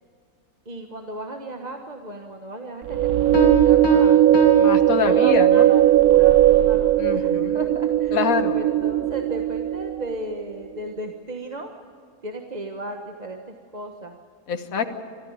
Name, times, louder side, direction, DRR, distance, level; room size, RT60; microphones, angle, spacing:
voice 1, 0.6-4.2 5.0-8.2 8.5-11.7 12.2-14.2, right 1 dB, 30° right, 3 dB, 1.3 m, -35 dB
sound 1, 2.9-10.2, right 13 dB, 90° right, 1.3 m, -18 dB
sound 2, 3.3-5.7, left 4 dB, 85° left, 2.5 m, -27 dB
voice 2, 4.6-5.7 7.0-7.6 8.1-8.7 14.5-15.0, left 5 dB, 70° left, 7 dB, 1.8 m, -25 dB
25.0 x 14.5 x 9.5 m, 2.4 s
omnidirectional pair, 1.5 m